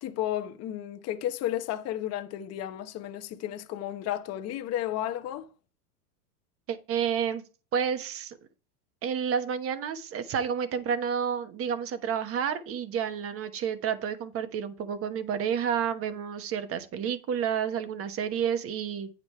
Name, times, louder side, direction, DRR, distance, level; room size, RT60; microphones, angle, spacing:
voice 1, 0.0-5.5, left 12 dB, 30° left, 1.0 m, -33 dB
voice 2, 6.7-7.4 7.7-8.4 9.0-19.1, right 7 dB, 30° right, 1.1 m, -30 dB
9.1 x 5.3 x 4.4 m
supercardioid pair, 135°, 47 cm